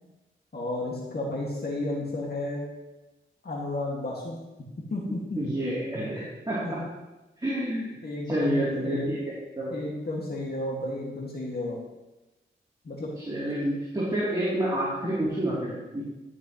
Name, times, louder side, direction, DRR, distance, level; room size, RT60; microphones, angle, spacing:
voice 1, 0.5-2.6 3.4-4.4 4.9-5.4 6.6-6.9 8.0-9.2 9.7-11.8 12.8-13.1, left 2 dB, 50° left, -3 dB, 2.1 m, -32 dB
voice 2, 5.4-6.8 7.4-7.9 8.3-9.2 9.6-9.7 13.3-16.0, right 1 dB, 20° right, -9 dB, 3.2 m, -28 dB
15.5 x 6.7 x 3.2 m, 1.0 s
wide cardioid pair, 80°, 21 cm